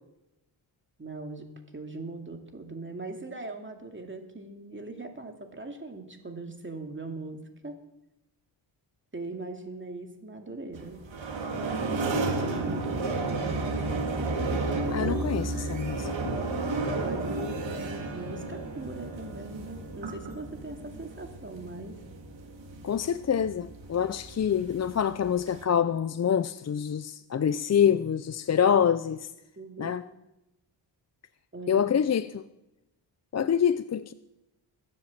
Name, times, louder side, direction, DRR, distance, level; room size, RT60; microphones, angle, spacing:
voice 1, 1.0-1.4 1.7-7.7 9.1-11.0 12.1-14.0 17.0-22.0 29.6-29.9 31.5-31.8, right 2 dB, 25° right, 4 dB, 2.6 m, -40 dB
sound 1, 10.7-25.6, right 3 dB, 70° right, 3.2 m, -32 dB
voice 2, 14.9-16.4 22.8-29.3 29.8-30.0 31.7-32.4 33.3-34.1, left 8 dB, 35° left, 13 dB, 0.5 m, -26 dB
21.0 x 7.8 x 7.4 m, 0.93 s
cardioid pair, 85°, 47 cm